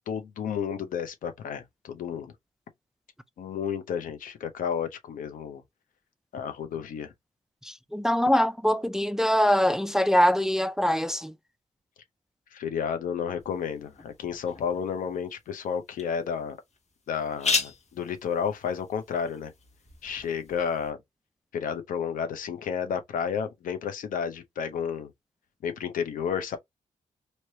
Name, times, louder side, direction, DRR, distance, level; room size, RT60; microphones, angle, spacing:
voice 1, 0.1-2.3 3.4-5.6 6.3-7.1 12.5-16.6 17.1-19.5 20.0-21.0 21.5-25.1 25.6-26.6, left 7 dB, 85° left, 0.7 m, -31 dB
voice 2, 7.6-11.3, equal, 5° right, 0.4 m, -23 dB
sound 1, 13.4-20.9, left 4 dB, 55° left, 1.4 m, -37 dB
3.2 x 2.9 x 2.7 m
cardioid pair, 60°, 14 cm